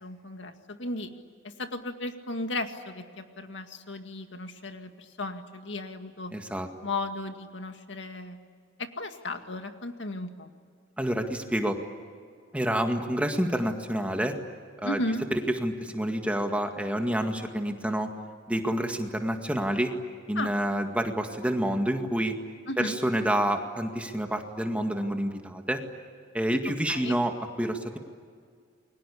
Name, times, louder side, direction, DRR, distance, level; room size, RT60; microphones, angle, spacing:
voice 1, 0.0-1.1 1.6-6.3 6.8-8.4 8.8-10.5 14.8-15.2 20.4-20.5 22.7-23.0 26.9-27.2, left 2 dB, 70° left, 6 dB, 2.1 m, -35 dB
voice 2, 6.3-6.7 11.0-11.8 12.5-14.4 14.8-15.0 15.3-18.1 18.5-20.0 20.3-22.4 22.8-25.8 26.3-28.0, right 1 dB, 5° right, 4 dB, 1.9 m, -28 dB
29.5 x 23.0 x 8.5 m, 2.1 s
head